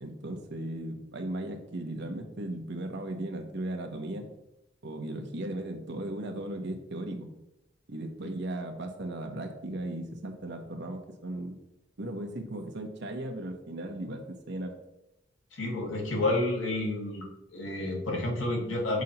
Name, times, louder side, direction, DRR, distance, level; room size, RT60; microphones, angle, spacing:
voice 1, 0.0-4.3 4.8-7.3 7.9-11.6 12.0-14.7, right 1 dB, 65° right, 4 dB, 1.0 m, -36 dB
voice 2, 15.5-17.3 17.5-19.0, left 2 dB, 80° left, 0 dB, 1.5 m, -30 dB
6.2 x 2.9 x 5.3 m, 0.87 s
head